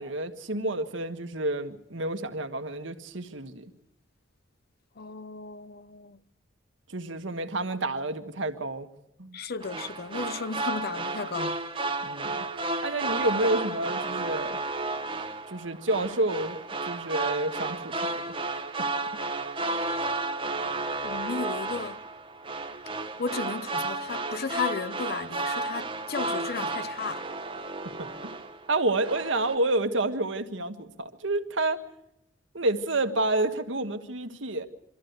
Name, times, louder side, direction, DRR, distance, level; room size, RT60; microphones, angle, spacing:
voice 1, 0.0-3.7 6.9-8.9 9.2-9.4 12.0-12.4 12.8-14.6 15.5-16.6 16.9-18.3 28.0-28.3 28.7-31.8 32.5-34.7, right 2 dB, 75° right, 1.6 m, -29 dB
voice 2, 5.0-6.2 9.3-11.6 21.0-22.0 23.2-27.3, left 5 dB, 55° left, 0.7 m, -34 dB
sound 1, 9.6-28.7 29.0-29.5, right 2 dB, 30° right, 1.2 m, -32 dB
24.5 x 14.0 x 8.1 m
head